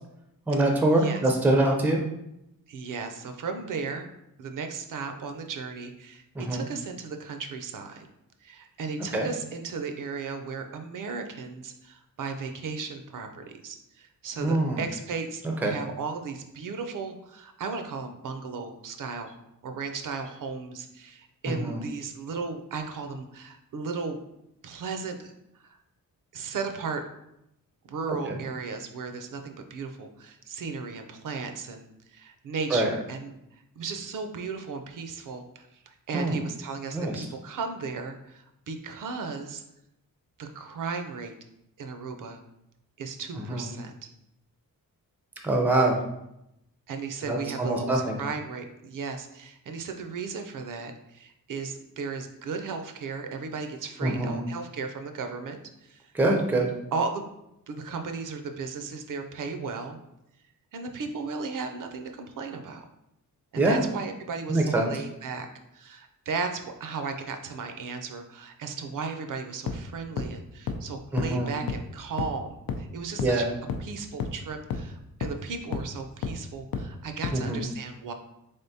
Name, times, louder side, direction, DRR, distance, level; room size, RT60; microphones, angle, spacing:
voice 1, 0.5-2.0 6.4-6.7 9.1-9.3 14.4-14.8 15.6-15.8 21.5-21.8 32.7-32.9 36.1-36.4 36.9-37.2 43.5-43.7 45.4-46.0 47.2-48.2 54.0-54.4 56.1-56.7 63.6-63.8 64.5-64.9 71.1-71.5 73.2-73.5 77.3-77.6, right 2 dB, 5° right, 2 dB, 0.4 m, -24 dB
voice 2, 2.7-4.1 4.4-8.1 8.4-19.4 19.6-24.2 24.6-25.3 25.6-25.8 26.3-27.0 27.8-33.3 33.8-39.6 40.4-41.4 41.8-42.4 43.0-44.1 46.9-56.1 56.9-57.3 57.7-60.0 60.7-62.9 63.5-65.5 65.7-73.5 73.8-78.1, right 4 dB, 65° right, 6 dB, 0.5 m, -35 dB
sound 1, 69.7-69.8 70.2-70.3 70.7-70.8 71.2-71.3 71.7-71.8 72.2-72.3 72.7-72.8 73.2-73.3 73.7-73.8 74.2-74.3 74.7-74.8 75.2-75.3 75.7-75.8 76.2-76.3 76.7-76.8 77.2-77.3, left 6 dB, 85° left, 0.5 m, -29 dB
3.6 x 3.4 x 2.7 m, 0.83 s
wide cardioid pair, 170°, 35 cm